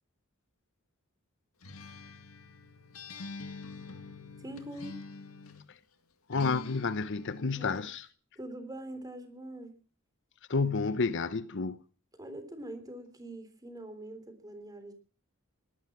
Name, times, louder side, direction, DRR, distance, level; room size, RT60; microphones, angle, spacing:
Acoustic guitar, 1.6-5.7 6.3-7.9, left 3 dB, 80° left, 2.0 m, -46 dB
voice 1, 4.4-5.0 7.4-7.8 8.4-9.8 12.2-14.9, right 1 dB, 15° right, 3.4 m, -44 dB
voice 2, 6.3-8.1 10.5-11.8, left 4 dB, 60° left, 0.8 m, -30 dB
18.5 x 13.0 x 6.0 m
head